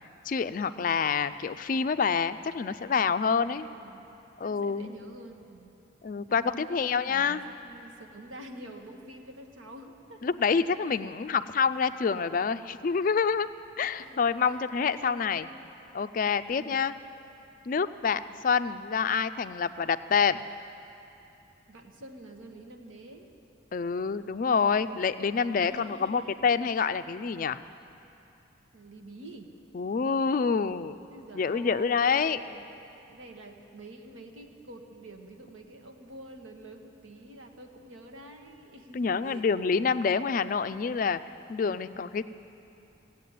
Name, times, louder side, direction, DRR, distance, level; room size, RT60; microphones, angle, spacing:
voice 1, 0.3-3.7 4.4-4.9 6.0-7.4 10.2-13.5 13.8-15.5 15.9-16.9 17.7-20.4 23.7-27.6 29.7-30.9 31.3-32.4 38.9-41.2 41.5-42.2, left 5 dB, 45° left, 12 dB, 0.3 m, -27 dB
voice 2, 3.6-4.1 4.4-5.8 6.3-10.2 10.8-11.0 14.0-15.5 16.5-16.8 21.7-23.3 25.4-26.4 28.7-29.5 31.1-32.7 33.1-39.5, right 1 dB, 90° right, 4 dB, 1.3 m, -47 dB
16.0 x 8.1 x 9.3 m, 2.8 s
head